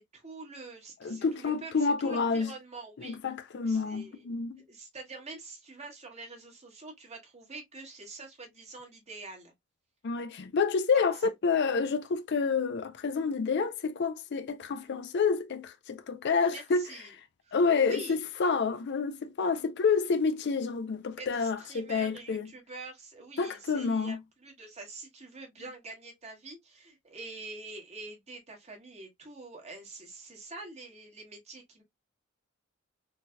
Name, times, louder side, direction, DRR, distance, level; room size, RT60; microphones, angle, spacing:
voice 1, 0.0-3.2 3.6-4.2 4.7-9.5 10.9-11.0 16.5-17.1 17.4-18.2 21.2-31.8, right 3 dB, 30° right, 1.2 m, -46 dB
voice 2, 1.0-2.5 3.0-4.6 10.0-16.9 17.5-22.5 23.4-24.2, left 5 dB, 55° left, 0.4 m, -28 dB
3.9 x 2.7 x 2.2 m
head